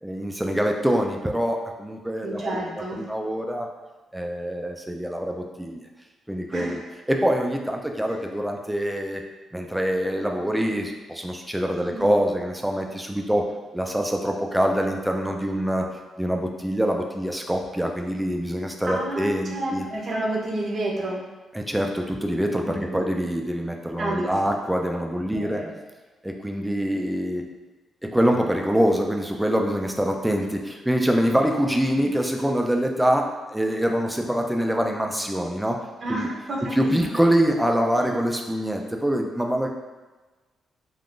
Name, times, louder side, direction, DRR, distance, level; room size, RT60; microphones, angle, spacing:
voice 1, 0.0-2.4 2.8-3.7 4.1-5.9 6.3-6.8 7.1-9.2 9.5-13.5 13.7-15.8 16.2-19.8 21.5-25.7 26.2-27.5 28.0-35.8 36.1-36.3 36.6-39.7, equal, 5° right, 2 dB, 0.3 m, -25 dB
voice 2, 2.2-3.0 6.5-6.8 8.1-8.2 11.9-12.1 18.8-21.2 22.7-23.0 24.0-24.3 25.3-25.7 36.0-36.9 38.0-38.1, right 1 dB, 45° right, -2 dB, 0.6 m, -30 dB
3.5 x 2.4 x 2.4 m, 1.2 s
cardioid pair, 110°, 0 cm